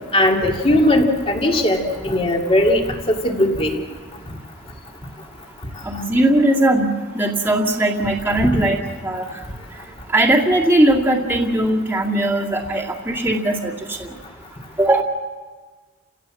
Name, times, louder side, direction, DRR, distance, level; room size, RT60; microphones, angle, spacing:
voice 1, 0.1-3.8 8.4-8.6, left 1 dB, 30° left, 2 dB, 2.6 m, -18 dB
voice 2, 5.8-9.4 10.1-14.1 14.8-15.0, right 1 dB, 10° right, -3 dB, 2.1 m, -19 dB
30.0 x 17.0 x 7.7 m, 1.4 s
head